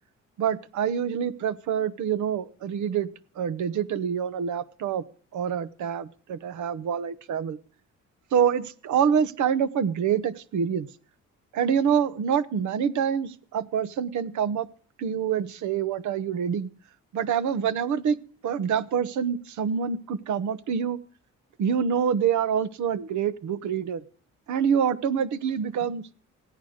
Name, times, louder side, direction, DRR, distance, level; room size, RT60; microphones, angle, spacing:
voice 1, 0.4-3.1 3.4-5.0 5.3-7.6 8.3-10.9 11.5-14.7 15.0-16.7 17.1-18.2 18.4-21.0 21.6-24.0 24.5-26.1, right 7 dB, 75° right, 13 dB, 1.1 m, -26 dB
16.0 x 9.2 x 6.5 m, 0.42 s
cardioid pair, 90°, 30 cm